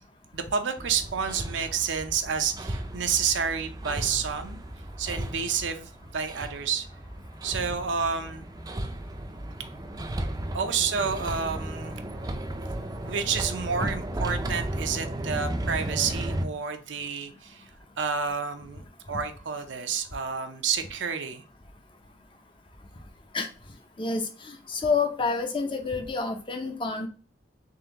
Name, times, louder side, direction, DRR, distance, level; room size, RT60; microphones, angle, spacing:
voice 1, 0.3-4.6 5.0-6.9 7.4-8.5 10.5-12.0 13.0-17.6 18.0-21.4, right 6 dB, 85° right, 6 dB, 0.6 m, -29 dB
Hammer, 0.8-16.4, right 1 dB, 20° right, 0.4 m, -35 dB
voice 2, 24.0-27.1, left 4 dB, 25° left, 4 dB, 0.6 m, -28 dB
3.7 x 3.4 x 2.8 m, 0.38 s
head